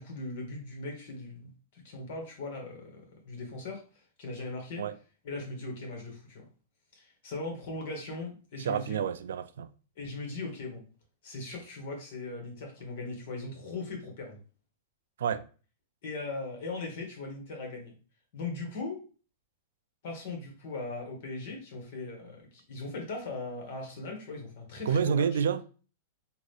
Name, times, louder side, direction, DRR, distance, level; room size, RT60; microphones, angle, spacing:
voice 1, 0.0-4.9 5.2-6.4 6.9-9.1 10.0-10.8 11.2-14.4 16.0-17.9 18.3-19.0 20.0-25.3, left 3 dB, 60° left, 1.6 m, -39 dB
voice 2, 8.6-9.7 15.2-15.4 24.9-25.6, right 7 dB, 80° right, 0.3 m, -28 dB
3.8 x 2.6 x 3.3 m
hypercardioid pair, 115°, 0 cm